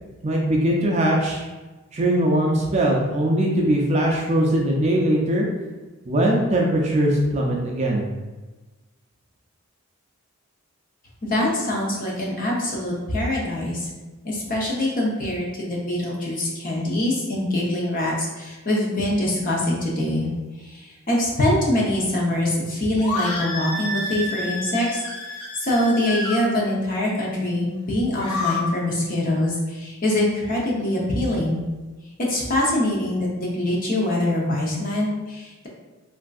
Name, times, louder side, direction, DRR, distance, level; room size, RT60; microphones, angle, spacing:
voice 1, 0.2-1.4 1.9-5.5 6.1-8.1, right 1 dB, 30° right, -1 dB, 0.4 m, -21 dB
voice 2, 11.2-13.9 14.2-20.3 20.6-25.0 25.6-31.6 32.2-35.7, left 1 dB, 40° left, -4 dB, 0.7 m, -24 dB
sound 1, 23.0-26.4 28.0-28.6, left 2 dB, 85° left, 0.6 m, -29 dB
3.5 x 2.5 x 2.3 m, 1.2 s
head